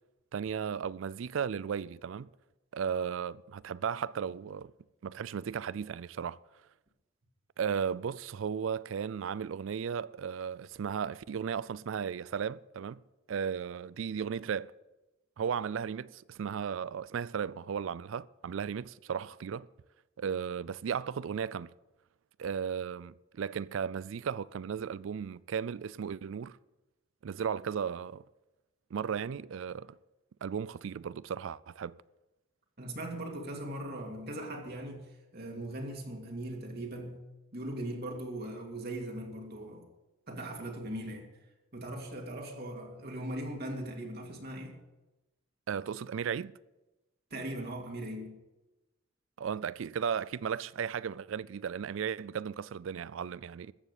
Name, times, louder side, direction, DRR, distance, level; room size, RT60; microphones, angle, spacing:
voice 1, 0.3-2.3 2.7-4.7 5.0-6.4 7.6-13.0 13.3-14.7 15.4-19.7 20.2-21.7 22.4-26.6 27.2-28.2 28.9-30.0 30.4-32.0 45.7-46.5 49.4-53.7, right 7 dB, 70° right, 0.4 m, -35 dB
voice 2, 32.8-39.9 40.3-41.3 41.7-44.8 47.3-48.4, right 1 dB, 50° right, 2.1 m, -39 dB
14.5 x 7.3 x 8.1 m
head